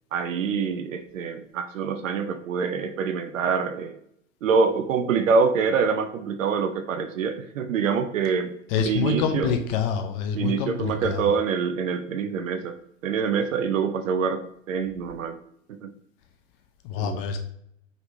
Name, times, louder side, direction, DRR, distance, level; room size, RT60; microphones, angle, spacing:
voice 1, 0.1-4.0 4.4-8.5 8.8-9.5 10.3-12.8 13.0-15.4 15.8-15.9 17.0-17.2, right 5 dB, 75° right, 8 dB, 0.6 m, -25 dB
voice 2, 8.7-11.3 16.8-17.4, left 6 dB, 40° left, 6 dB, 0.7 m, -26 dB
5.0 x 3.3 x 2.6 m, 0.74 s
figure-of-eight pair, 95°, 40 cm